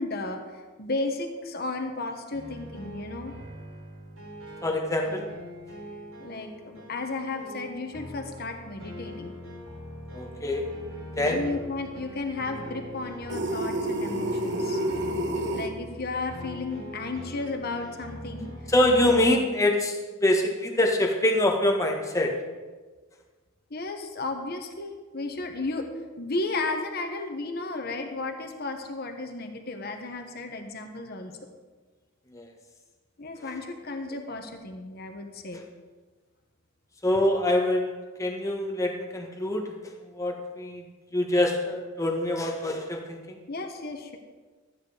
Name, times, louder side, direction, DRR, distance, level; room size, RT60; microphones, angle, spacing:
voice 1, 0.0-3.3 6.2-9.3 11.2-14.8 15.5-18.5 19.0-19.5 23.7-25.9 26.2-31.4 33.2-35.6 43.5-44.2, left 3 dB, 50° left, 4 dB, 1.3 m, -34 dB
sound 1, 2.3-19.3, equal, 80° right, 4.7 m, -42 dB
voice 2, 4.6-5.2 10.1-10.7 11.2-11.4 18.7-19.9 20.2-22.3 32.3-32.5 37.0-37.9 38.2-40.8 41.1-43.4, left 1 dB, 15° left, 1 dB, 1.4 m, -25 dB
sound 2, 13.3-15.7, right 1 dB, 55° right, 1.1 m, -29 dB
13.0 x 9.1 x 5.0 m, 1.4 s
head